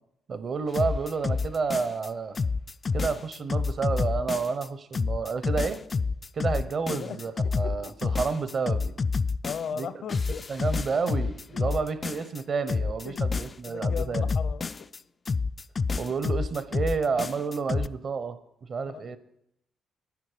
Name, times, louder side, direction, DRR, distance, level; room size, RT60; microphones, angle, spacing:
voice 1, 0.3-2.4 2.9-5.8 6.3-8.9 9.7-9.9 10.5-14.3 15.9-18.4 18.7-19.2, right 5 dB, 50° right, 13 dB, 0.9 m, -30 dB
sound 1, 0.7-2.1 2.4-4.7 4.9-9.8 10.1-12.4 12.7-15.0 15.3-17.9, left 4 dB, 35° left, 0.3 m, -28 dB
voice 2, 6.9-7.9 9.4-10.4 13.0-14.9 18.9-19.1, left 7 dB, 65° left, 13 dB, 0.8 m, -38 dB
11.0 x 10.5 x 5.1 m, 0.79 s
cardioid pair, 90°, 0 cm